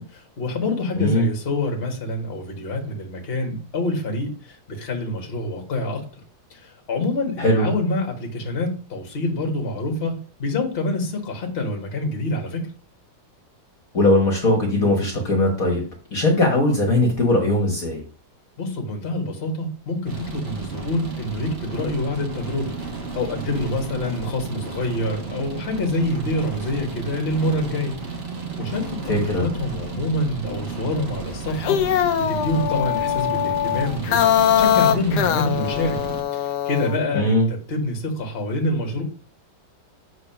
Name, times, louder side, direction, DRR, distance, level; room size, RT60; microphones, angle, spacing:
voice 1, 0.1-6.0 6.5-12.7 18.6-22.7 23.1-27.9 28.6-34.2 34.6-36.0 36.3-39.0, left 2 dB, 35° left, 2 dB, 1.6 m, -26 dB
voice 2, 1.0-1.3 7.4-7.7 13.9-15.8 16.1-18.0 29.1-29.4 37.1-37.5, left 1 dB, 50° left, 1 dB, 1.6 m, -19 dB
sound 1, 20.1-36.2, right 4 dB, 35° right, 1.5 m, -33 dB
sound 2, 31.5-37.0, left 10 dB, 70° left, 1.1 m, -22 dB
7.1 x 3.9 x 5.7 m, 0.40 s
omnidirectional pair, 2.1 m